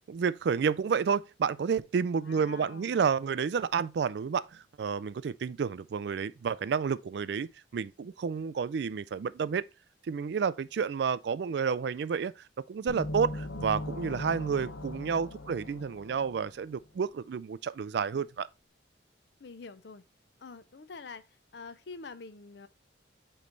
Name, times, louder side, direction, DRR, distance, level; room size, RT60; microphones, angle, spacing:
voice 1, 0.1-9.6 10.0-18.5, right 6 dB, 60° right, 0.3 m, -30 dB
voice 2, 2.2-3.0 19.4-20.1 20.4-22.7, left 4 dB, 60° left, 0.5 m, -46 dB
sound 1, 12.9-16.6, left 1 dB, 90° left, 0.9 m, -39 dB
8.4 x 3.2 x 3.8 m
head